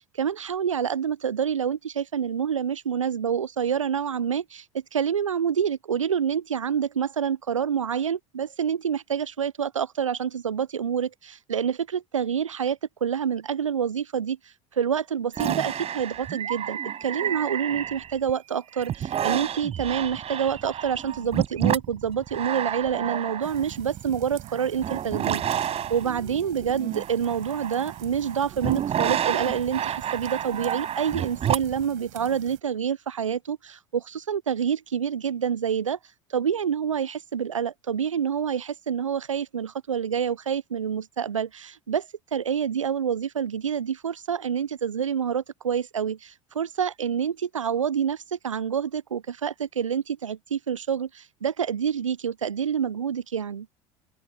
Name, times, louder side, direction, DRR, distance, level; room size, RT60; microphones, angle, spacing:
voice 1, 0.0-14.4 14.7-36.0 36.3-53.7, right 8 dB, 85° right, 0.5 m, -27 dB
sound 1, 15.3-18.3 18.7-31.9, right 10 dB, 40° right, 4.6 m, -30 dB
sound 2, 23.4-32.6, right 24 dB, 60° right, 4.9 m, -46 dB
open air
figure-of-eight pair, 65°, 16 cm